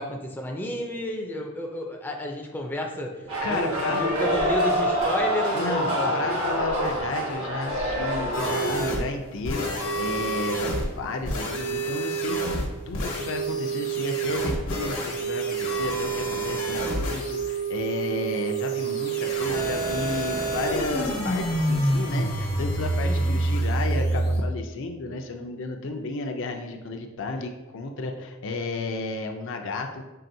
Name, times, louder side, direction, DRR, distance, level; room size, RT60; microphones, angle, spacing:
voice 1, 0.0-6.2 23.0-23.4, left 1 dB, 10° left, 1 dB, 0.4 m, -32 dB
sound 1, 3.3-8.8, equal, 80° right, 1.2 m, -26 dB
voice 2, 3.4-4.0 5.5-12.6 12.9-30.0, left 3 dB, 65° left, 4 dB, 0.5 m, -33 dB
sound 2, 8.3-24.4, right 2 dB, 80° left, 1.1 m, -27 dB
5.6 x 3.3 x 2.6 m, 1.1 s
head